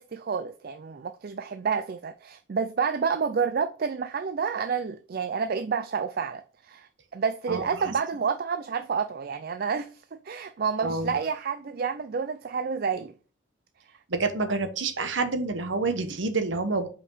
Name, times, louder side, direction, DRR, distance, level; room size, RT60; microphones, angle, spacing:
voice 1, 0.0-13.1, right 6 dB, 50° right, 0.4 m, -29 dB
voice 2, 7.5-7.9 10.8-11.2 14.1-16.9, right 3 dB, 70° right, 1.1 m, -28 dB
5.5 x 5.0 x 5.4 m
head